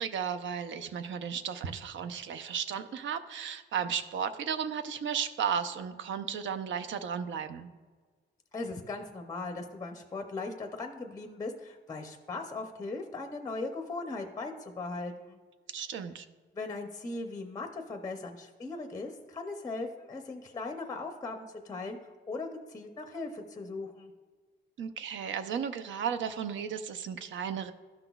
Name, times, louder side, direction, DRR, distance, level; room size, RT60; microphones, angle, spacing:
voice 1, 0.0-7.7 15.7-16.3 24.8-27.7, right 7 dB, 75° right, 10 dB, 0.6 m, -34 dB
voice 2, 8.5-15.4 16.5-22.0 22.3-24.1, left 3 dB, 15° left, 5 dB, 0.5 m, -38 dB
12.5 x 5.9 x 2.3 m, 1.5 s
cardioid pair, 155°, 20 cm